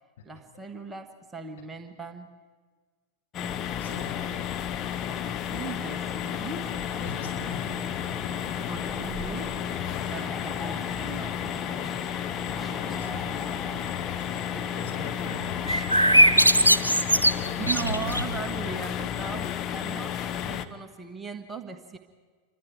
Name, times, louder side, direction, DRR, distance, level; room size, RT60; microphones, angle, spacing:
voice 1, 0.2-2.4 4.0-4.1 5.1-6.8 8.7-9.7 10.1-11.5 16.3-16.4 17.6-22.0, right 5 dB, 15° right, 7 dB, 1.6 m, -38 dB
sound 1, 3.3-20.7, left 9 dB, 30° left, 1.2 m, -32 dB
voice 2, 3.7-4.9 7.0-7.8 8.2-8.6 12.2-13.7 14.7-16.8 17.2-17.9, left 5 dB, 60° left, -1 dB, 7.3 m, -43 dB
sound 2, 6.7-15.9, equal, ahead, 1.1 m, -42 dB
sound 3, 15.7-18.4, right 1 dB, 85° right, 0.9 m, -20 dB
29.0 x 25.0 x 4.7 m, 1.5 s
figure-of-eight pair, 90°, 0 cm